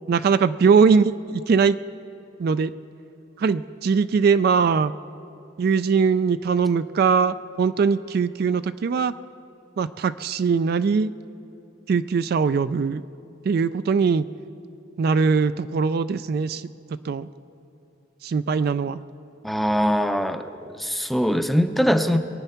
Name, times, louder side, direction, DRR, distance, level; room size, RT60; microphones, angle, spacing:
voice 1, 0.1-1.8 2.4-2.7 3.4-4.9 5.6-9.1 9.8-11.1 11.9-13.0 13.5-14.2 15.0-16.6 17.0-17.3 18.2-19.0, right 5 dB, 55° right, 13 dB, 0.3 m, -21 dB
voice 2, 19.4-22.2, equal, ahead, 8 dB, 0.5 m, -22 dB
22.0 x 9.2 x 5.7 m, 2.7 s
head